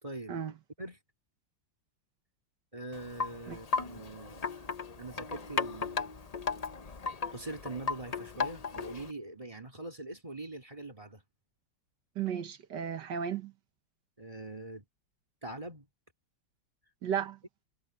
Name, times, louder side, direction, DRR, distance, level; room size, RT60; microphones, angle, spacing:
voice 1, 0.0-0.4 0.8-1.0 2.7-4.7 5.0-6.1 7.3-11.2 14.2-14.9 15.4-15.9, right 2 dB, 20° right, 2.4 m, -43 dB
Wind chime, 2.9-9.1, left 5 dB, 45° left, 0.4 m, -36 dB
voice 2, 12.2-13.5 17.0-17.4, right 8 dB, 70° right, 1.8 m, -34 dB
omnidirectional pair, 2.0 m